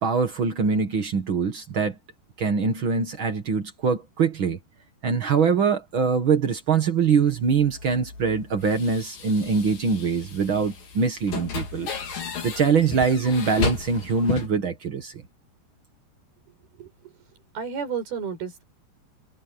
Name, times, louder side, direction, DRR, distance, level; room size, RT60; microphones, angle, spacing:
voice 1, 0.0-2.0 2.4-4.6 5.0-11.9 12.4-15.2, right 5 dB, 85° right, 1.1 m, -23 dB
sound 1, 7.1-14.5, left 4 dB, 50° left, 5.6 m, -34 dB
voice 2, 16.8-17.1 17.5-18.6, right 6 dB, 55° right, 6.8 m, -32 dB
omnidirectional pair, 5.3 m